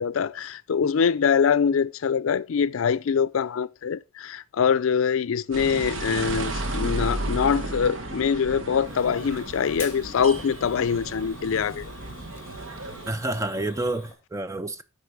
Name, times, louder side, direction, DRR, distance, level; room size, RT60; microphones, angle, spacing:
voice 1, 0.0-11.9, left 6 dB, 75° left, 0.4 m, -24 dB
sound 1, 5.5-13.1, right 2 dB, 70° right, 1.1 m, -33 dB
Fire, 8.8-14.1, left 3 dB, 10° left, 2.2 m, -45 dB
voice 2, 13.1-14.8, right 2 dB, 15° right, 0.4 m, -29 dB
8.5 x 5.1 x 4.7 m
head